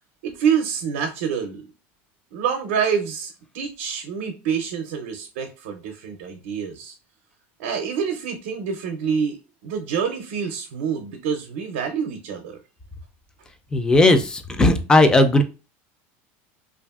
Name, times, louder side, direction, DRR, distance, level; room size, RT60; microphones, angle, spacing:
voice 1, 0.2-1.6 2.3-6.9 7.6-9.4 9.6-12.6, right 7 dB, 85° right, 4 dB, 0.5 m, -26 dB
voice 2, 13.7-15.4, left 2 dB, 10° left, 7 dB, 0.3 m, -16 dB
2.7 x 2.4 x 2.3 m, 0.32 s
supercardioid pair, 140°, 7 cm